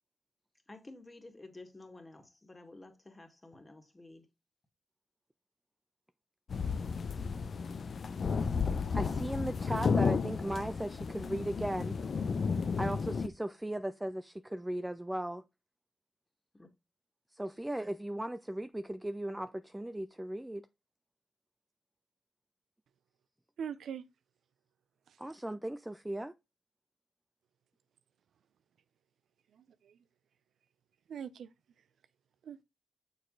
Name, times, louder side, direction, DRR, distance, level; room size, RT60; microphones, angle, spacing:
voice 1, 0.7-4.3 16.5-16.7, left 2 dB, 25° left, 1.8 m, -52 dB
sound 1, 6.5-13.3, left 5 dB, 60° left, 0.7 m, -33 dB
voice 2, 8.9-12.0 12.8-15.4 17.3-20.7 25.2-26.3, right 1 dB, 10° right, 0.5 m, -37 dB
voice 3, 23.6-24.0 25.1-25.2 29.5-30.0 31.1-31.5 32.4-32.6, right 8 dB, 85° right, 0.5 m, -42 dB
6.6 x 4.8 x 3.9 m
cardioid pair, 65°, 0 cm